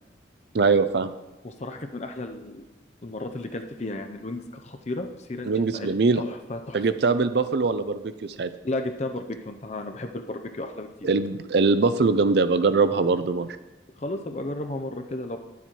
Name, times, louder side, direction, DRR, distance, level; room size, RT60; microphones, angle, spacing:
voice 1, 0.5-1.1 5.4-6.2 6.7-8.5 11.0-13.5, right 4 dB, 60° right, 12 dB, 0.5 m, -22 dB
voice 2, 1.4-2.6 3.0-5.9 6.2-6.8 8.6-11.1 14.0-15.4, left 2 dB, 35° left, 5 dB, 0.6 m, -33 dB
10.0 x 7.2 x 4.5 m, 1.0 s
head